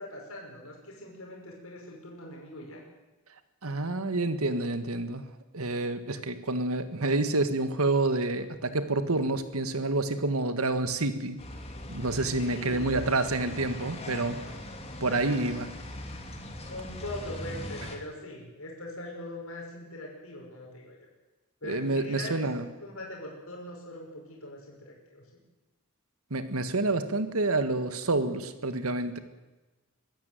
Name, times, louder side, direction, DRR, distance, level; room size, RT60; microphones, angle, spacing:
voice 1, 0.0-2.8 12.4-13.1 15.1-15.5 16.7-21.0 21.6-22.4 22.8-25.4, left 1 dB, 75° left, -1 dB, 5.9 m, -41 dB
voice 2, 3.6-5.2 5.5-11.4 11.9-14.4 15.0-15.7 21.6-22.6 26.3-29.2, right 2 dB, 85° right, 10 dB, 1.7 m, -28 dB
sound 1, 11.4-18.0, left 1 dB, 30° left, 2.8 m, -40 dB
23.5 x 13.5 x 9.2 m, 1.1 s
head